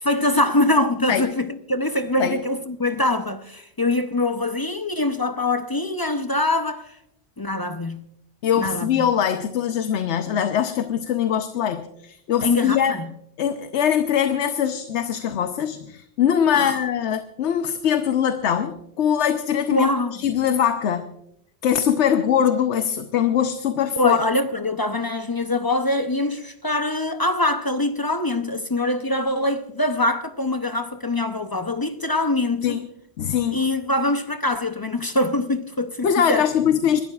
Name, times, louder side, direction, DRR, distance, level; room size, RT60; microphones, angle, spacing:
voice 1, 0.0-7.0 7.4-8.0 8.5-9.1 12.4-13.1 16.5-16.8 19.7-20.2 24.0-32.8 33.5-36.5, left 2 dB, 25° left, 0.5 m, -23 dB
voice 2, 8.4-13.0 13.4-21.1 21.6-24.2 32.6-32.9 33.2-33.6 36.0-37.0, left 9 dB, 85° left, 1.0 m, -22 dB
29.5 x 12.5 x 2.4 m
omnidirectional pair, 1.1 m